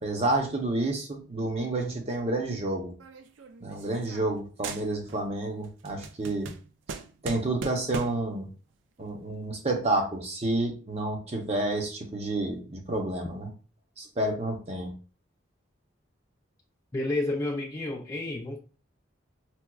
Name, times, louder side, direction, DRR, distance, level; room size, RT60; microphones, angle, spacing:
voice 1, 0.0-2.9 3.6-6.5 7.2-8.5 9.0-13.5 14.0-14.9, right 2 dB, 30° right, 3 dB, 0.7 m, -29 dB
sound 1, 3.0-4.4 4.6-5.3 5.6-8.3, right 5 dB, 65° right, 0.3 m, -40 dB
voice 2, 16.9-18.6, left 2 dB, 15° left, -1 dB, 0.3 m, -30 dB
4.4 x 2.3 x 2.2 m, 0.37 s
head